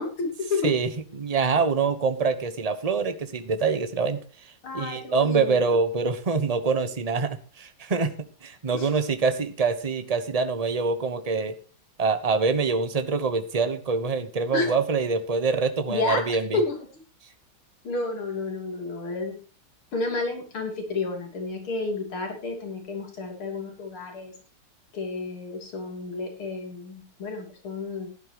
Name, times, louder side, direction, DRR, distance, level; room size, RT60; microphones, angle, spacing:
voice 1, 0.0-0.7 4.6-5.6 8.7-8.9 14.5-14.7 15.9-16.2 16.5-16.8 17.8-19.4 19.9-24.3 24.9-28.1, left 3 dB, 85° left, 3 dB, 4.0 m, -30 dB
voice 2, 0.6-8.1 8.4-11.6 12.0-16.6, right 4 dB, 25° right, 10 dB, 0.9 m, -25 dB
16.0 x 11.0 x 3.1 m, 0.36 s
omnidirectional pair, 2.3 m